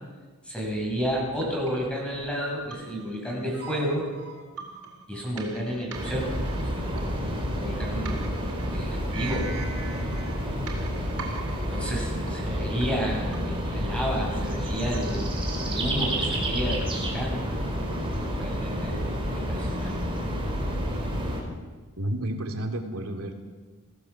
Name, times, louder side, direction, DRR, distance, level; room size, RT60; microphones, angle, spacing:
voice 1, 0.4-4.1 5.1-6.4 6.6-7.2 7.6-8.3 8.7-9.5 11.7-17.4 17.8-17.9 18.2-19.0 19.3-20.0, equal, 5° left, -3 dB, 7.5 m, -31 dB
sound 1, 0.9-17.1, right 3 dB, 90° right, 4.2 m, -43 dB
sound 2, 5.9-21.4, equal, 25° right, 4.8 m, -29 dB
voice 2, 22.0-23.3, right 1 dB, 70° right, 3 dB, 3.1 m, -31 dB
24.0 x 16.5 x 7.4 m, 1.4 s
head